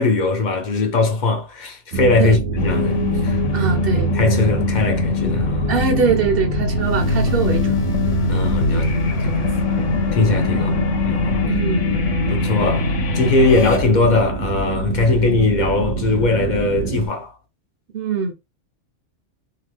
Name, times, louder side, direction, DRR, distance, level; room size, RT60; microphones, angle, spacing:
voice 1, 0.0-3.4 3.9-5.7 8.3-9.4 10.1-10.7 11.0-11.4 12.3-17.4, left 3 dB, 50° left, 0.6 m, -20 dB
sound 1, 1.9-17.1, right 4 dB, 80° right, 1.0 m, -25 dB
sound 2, 2.6-13.8, left 5 dB, 80° left, 1.0 m, -23 dB
voice 2, 3.5-4.1 5.7-7.8 8.7-8.9 9.2-9.5 10.5-10.8 11.4-12.0 17.9-18.3, right 5 dB, 60° right, 0.7 m, -22 dB
2.8 x 2.3 x 3.2 m
omnidirectional pair, 1.3 m